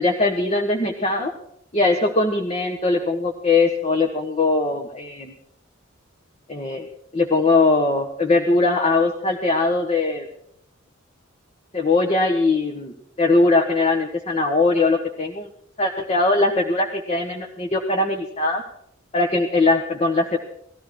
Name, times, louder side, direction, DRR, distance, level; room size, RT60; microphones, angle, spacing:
voice 1, 0.0-1.3 1.7-5.3 6.5-6.9 7.1-10.3 11.7-15.5 15.8-18.6 19.1-20.4, left 3 dB, 30° left, 3 dB, 1.5 m, -20 dB
19.5 x 14.5 x 4.7 m, 0.68 s
head